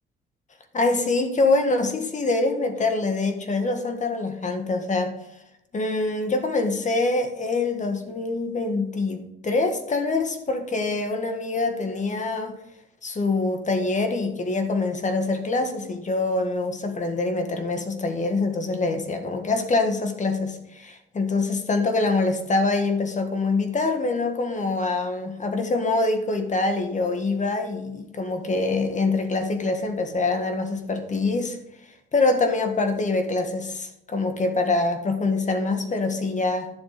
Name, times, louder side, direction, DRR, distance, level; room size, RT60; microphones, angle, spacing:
voice 1, 0.7-5.1 5.7-12.5 13.0-31.6 32.1-36.7, left 3 dB, 40° left, 6 dB, 1.7 m, -25 dB
11.0 x 7.2 x 5.2 m, 0.84 s
cardioid pair, 90°, 20 cm